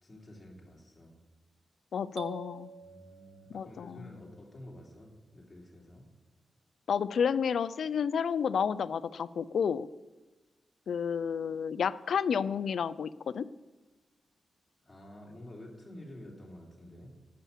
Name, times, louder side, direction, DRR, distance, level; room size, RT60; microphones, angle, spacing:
voice 1, 0.0-1.2 2.8-6.1 14.8-17.2, left 1 dB, 15° left, -3 dB, 3.1 m, -50 dB
voice 2, 1.9-2.7 3.5-4.1 6.9-9.9 10.9-13.5, left 7 dB, 65° left, 16 dB, 0.4 m, -31 dB
sound 1, 2.2-4.1, right 6 dB, 70° right, 1.1 m, -47 dB
11.0 x 9.6 x 7.4 m, 1.2 s
wide cardioid pair, 180°, 0 cm